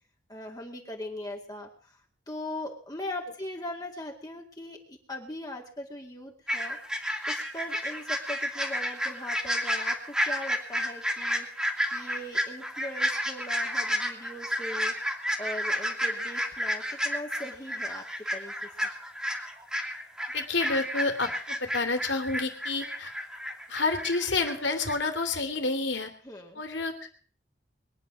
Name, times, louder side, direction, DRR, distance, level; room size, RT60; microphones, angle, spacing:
voice 1, 0.3-2.0 2.3-6.8 7.3-11.5 11.9-14.9 15.4-18.5 26.2-26.6, left 1 dB, 20° left, 0 dB, 2.2 m, -40 dB
sound 1, 6.5-24.5 24.8-24.9, equal, 5° right, 2.3 m, -31 dB
voice 2, 20.3-23.1 23.7-26.1 26.5-27.2, left 3 dB, 85° left, 6 dB, 2.9 m, -29 dB
22.0 x 10.0 x 6.2 m, 0.42 s
head